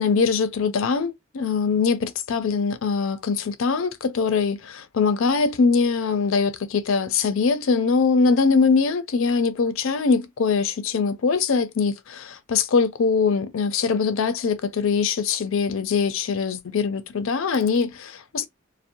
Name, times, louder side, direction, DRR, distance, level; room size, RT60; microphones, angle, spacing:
voice 1, 0.0-18.5, left 5 dB, 70° left, 0.4 m, -22 dB
2.6 x 2.0 x 2.7 m
head